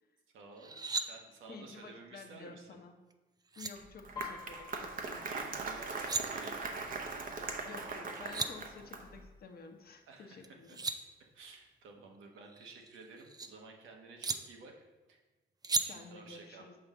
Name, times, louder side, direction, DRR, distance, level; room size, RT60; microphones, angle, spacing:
voice 1, 0.3-2.8 5.2-6.8 10.1-10.8 11.3-15.2 15.8-16.7, right 4 dB, 80° right, 2 dB, 1.1 m, -53 dB
sound 1, 0.6-1.1 3.1-3.2 3.5-3.7 5.8-6.2 7.9-8.0 8.2-8.5 10.4-11.0 12.5-13.5 14.2-14.4 15.6-15.8, right 4 dB, 20° right, 0.4 m, -35 dB
voice 2, 1.5-3.0 3.6-5.3 7.7-10.8 15.9-16.8, left 4 dB, 50° left, 5 dB, 0.9 m, -51 dB
Applause, 3.8-9.2, right 4 dB, 45° right, 0.8 m, -40 dB
Piano, 4.1-7.8 8.1-8.6 8.9-9.5 10.1-10.2 10.5-11.5 11.9-12.0, left 7 dB, 20° left, 1.0 m, -51 dB
6.3 x 5.2 x 3.6 m, 1.2 s
cardioid pair, 90°, 20 cm